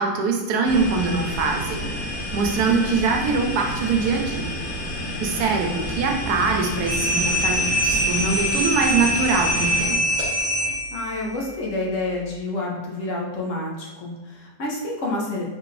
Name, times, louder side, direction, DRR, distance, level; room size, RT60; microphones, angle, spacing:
voice 1, 0.0-4.5 5.2-10.0, right 4 dB, 85° right, 2 dB, 1.2 m, -23 dB
sound 1, 0.6-9.8, left 1 dB, 85° left, 1.7 m, -30 dB
sound 2, 6.9-11.1, equal, 30° left, 1.1 m, -23 dB
voice 2, 10.9-15.4, left 2 dB, 60° left, -2 dB, 1.1 m, -28 dB
4.1 x 2.5 x 3.1 m, 1.3 s
omnidirectional pair, 1.6 m